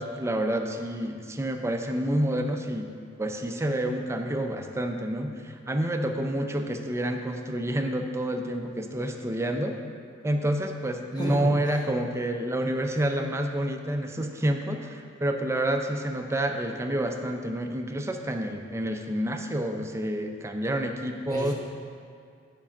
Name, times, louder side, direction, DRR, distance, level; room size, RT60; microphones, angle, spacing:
voice 1, 0.0-2.9 3.2-9.8 10.2-21.5, right 1 dB, 15° right, 4 dB, 0.5 m, -29 dB
voice 2, 11.2-11.8 21.3-21.5, left 1 dB, 20° left, -4 dB, 1.1 m, -31 dB
7.3 x 5.3 x 5.8 m, 2.3 s
head